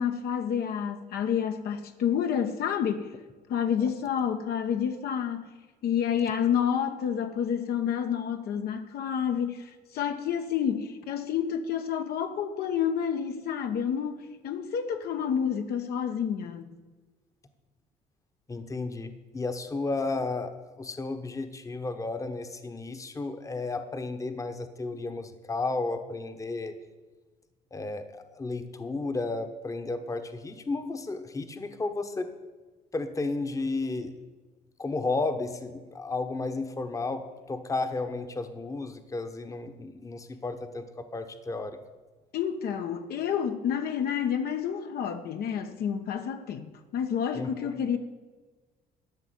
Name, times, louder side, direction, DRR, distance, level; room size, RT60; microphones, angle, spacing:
voice 1, 0.0-3.1 3.5-5.6 5.8-16.7 42.3-48.0, left 8 dB, 70° left, 1.1 m, -29 dB
voice 2, 18.5-26.7 27.7-32.3 32.9-34.2 34.8-41.8 47.3-47.7, left 3 dB, 20° left, 1.0 m, -33 dB
13.0 x 5.9 x 9.3 m
cardioid pair, 110°, 17 cm